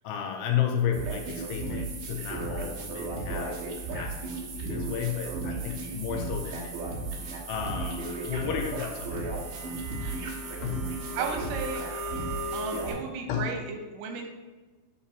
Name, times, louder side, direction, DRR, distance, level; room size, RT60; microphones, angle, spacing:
voice 1, 0.0-6.9 7.5-9.4 9.6-9.9 10.6-11.0 13.3-13.6, left 8 dB, 85° left, 3 dB, 2.9 m, -33 dB
sound 1, 0.9-12.9, right 2 dB, 65° right, 2.7 m, -34 dB
voice 2, 11.2-11.8 12.5-14.3, right 5 dB, 90° right, 3 dB, 3.1 m, -34 dB
8.6 x 5.7 x 2.9 m, 1.3 s
omnidirectional pair, 4.7 m